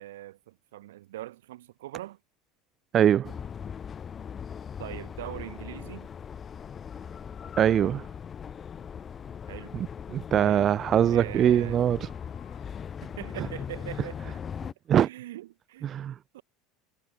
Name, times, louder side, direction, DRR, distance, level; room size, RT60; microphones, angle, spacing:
voice 1, 0.0-2.2 4.8-6.1 9.5-9.8 10.3-10.7 11.1-11.8 13.0-14.4 15.0-16.0 16.3-16.4, right 15 dB, 90° right, 3.1 m, -41 dB
voice 2, 2.9-3.3 7.6-8.1 9.7-12.0 14.9-15.1 15.8-16.1, right 10 dB, 40° right, 0.6 m, -22 dB
sound 1, 3.2-14.7, left 7 dB, 30° left, 2.0 m, -39 dB
Crying sobbing, 5.5-5.6 8.1-8.3 9.8-9.9 10.5-10.6 10.8-10.9 11.9-13.0 14.0-14.3 14.9-15.0, left 34 dB, 70° left, 5.7 m, -60 dB
supercardioid pair, 105°, 0 cm